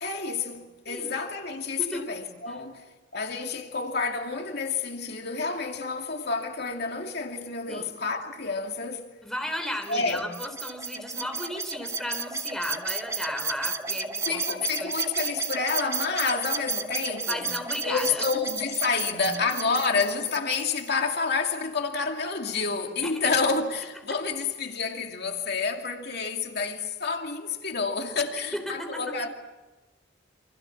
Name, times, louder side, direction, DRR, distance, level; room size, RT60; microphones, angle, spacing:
voice 1, 0.0-2.8 3.1-9.1 9.9-10.3 14.3-17.5 17.8-29.3, left 4 dB, 55° left, 2.5 m, -29 dB
voice 2, 9.2-14.9 17.3-18.2 23.0-23.3 28.5-29.1, equal, ahead, 3.4 m, -35 dB
sound 1, 9.8-20.9, right 4 dB, 15° right, 1.4 m, -33 dB
28.5 x 26.0 x 7.2 m
head